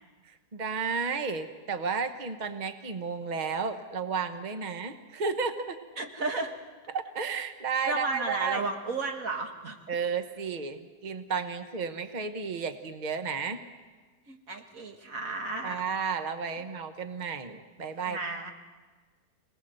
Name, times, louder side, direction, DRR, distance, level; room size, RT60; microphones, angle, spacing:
voice 1, 0.2-5.8 6.9-8.6 9.9-13.6 15.6-18.2, right 5 dB, 30° right, 8 dB, 1.1 m, -32 dB
voice 2, 6.0-6.5 7.9-9.8 14.3-15.8 18.0-18.5, right 3 dB, 55° right, 4 dB, 2.1 m, -33 dB
26.5 x 19.5 x 7.8 m, 1.4 s
omnidirectional pair, 1.8 m